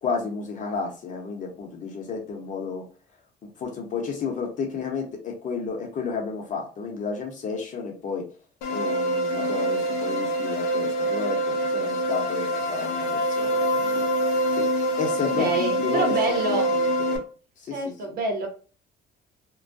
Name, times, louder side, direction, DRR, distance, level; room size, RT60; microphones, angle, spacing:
voice 1, 0.0-2.8 3.4-8.2 8.7-14.0 14.5-14.7 15.0-17.2 17.6-18.2, left 5 dB, 50° left, 1 dB, 0.9 m, -32 dB
sound 1, 8.6-17.2, right 1 dB, 90° left, 0.5 m, -25 dB
voice 2, 15.4-16.7 17.7-18.5, right 2 dB, 65° right, 3 dB, 0.8 m, -27 dB
2.2 x 2.2 x 2.6 m, 0.37 s
cardioid pair, 110°, 17 cm